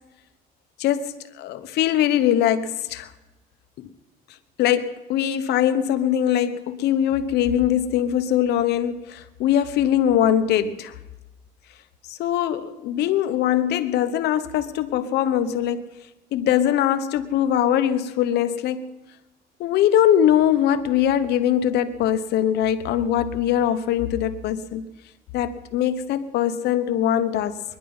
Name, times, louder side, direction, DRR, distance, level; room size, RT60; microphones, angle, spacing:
voice 1, 0.8-3.1 3.8-3.9 4.6-10.9 12.1-15.8 16.3-18.9 19.6-24.8 25.3-27.6, left 10 dB, 80° left, 1.1 m, -22 dB
22.5 x 11.0 x 5.6 m
cardioid pair, 110°, 17 cm